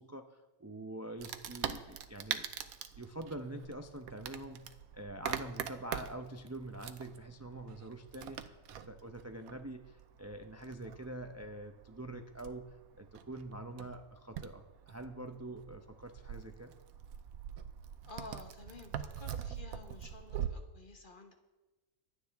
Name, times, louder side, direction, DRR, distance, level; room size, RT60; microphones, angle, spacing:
voice 1, 0.0-2.5 3.0-16.7, right 1 dB, 20° right, 6 dB, 0.4 m, -45 dB
Wood, 1.2-20.5, right 9 dB, 75° right, 1.2 m, -44 dB
voice 2, 18.0-21.3, left 3 dB, 35° left, 4 dB, 1.3 m, -51 dB
25.0 x 9.2 x 3.5 m, 1.1 s
omnidirectional pair, 1.5 m